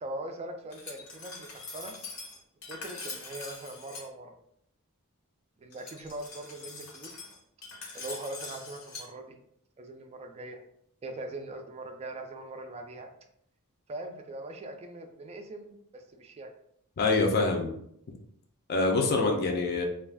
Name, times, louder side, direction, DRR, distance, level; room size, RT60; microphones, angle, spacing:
voice 1, 0.0-2.0 2.7-4.4 5.6-7.1 7.9-9.4 9.8-10.6 11.0-13.1 13.9-16.5, right 2 dB, 30° right, 4 dB, 0.3 m, -41 dB
Glass, 0.7-4.1 5.7-9.1, left 3 dB, 75° left, 0.8 m, -43 dB
voice 2, 17.0-17.7 18.7-19.9, left 3 dB, 45° left, 2 dB, 0.4 m, -25 dB
2.4 x 2.2 x 3.3 m, 0.70 s
head